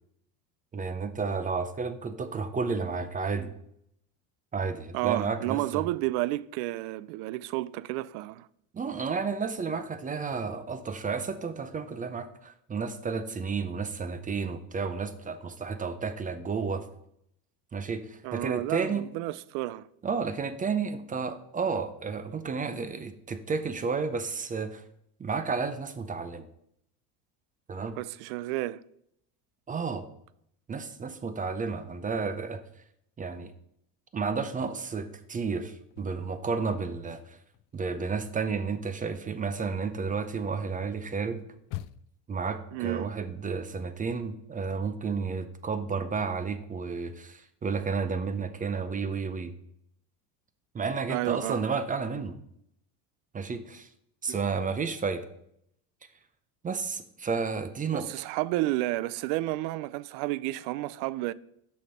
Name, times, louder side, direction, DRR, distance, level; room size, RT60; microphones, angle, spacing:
voice 1, 0.7-3.5 4.5-5.8 8.7-16.9 17.7-19.0 20.0-24.8 25.2-26.5 27.7-28.0 29.7-30.1 30.7-32.6 33.2-33.5 34.1-37.4 37.7-41.4 42.3-49.5 50.7-52.4 53.3-53.9 54.2-55.2 56.6-58.2, right 5 dB, 20° right, 0.6 m, -32 dB
voice 2, 4.9-8.5 18.2-19.9 28.0-28.8 42.7-43.1 51.1-51.6 54.3-54.4 57.9-61.3, right 17 dB, 65° right, 0.5 m, -31 dB
sound 1, 35.7-36.9 37.2-42.3, left 14 dB, 50° left, 0.4 m, -46 dB
6.4 x 5.4 x 5.6 m
supercardioid pair, 120°, 42 cm